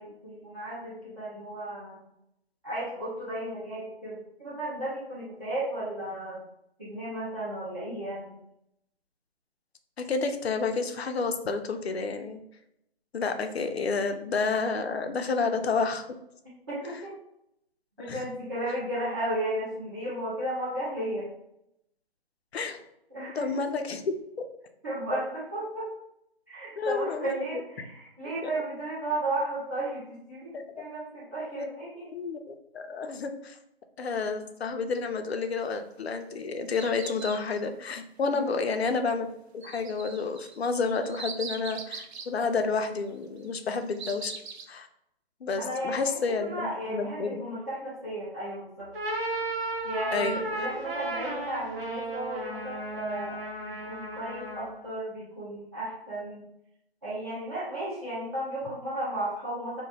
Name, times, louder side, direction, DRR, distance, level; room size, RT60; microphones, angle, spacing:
voice 1, 0.0-2.0 2.6-6.4 6.8-8.4 16.7-17.1 18.0-21.3 23.1-23.6 24.8-25.9 26.5-32.1 38.3-38.5 45.6-48.9 49.8-56.4 57.0-59.8, right 1 dB, 20° right, -13 dB, 0.6 m, -34 dB
voice 2, 10.0-12.4 13.1-16.0 18.0-18.2 22.5-22.8 23.3-24.1 26.8-27.4 27.8-27.9 28.4-28.5 30.5-30.9 31.6-31.7 32.1-33.6 34.0-39.3 39.5-44.3 44.7-44.9 45.4-47.4 50.1-50.7, left 4 dB, 75° left, 7 dB, 0.5 m, -30 dB
sound 1, 36.1-37.7 39.6-42.3 43.4-44.7, right 5 dB, 80° right, 0.5 m, -41 dB
sound 2, 48.8-54.8, right 1 dB, 65° right, 0.9 m, -34 dB
2.3 x 2.1 x 3.2 m, 0.79 s
figure-of-eight pair, 160°, 32 cm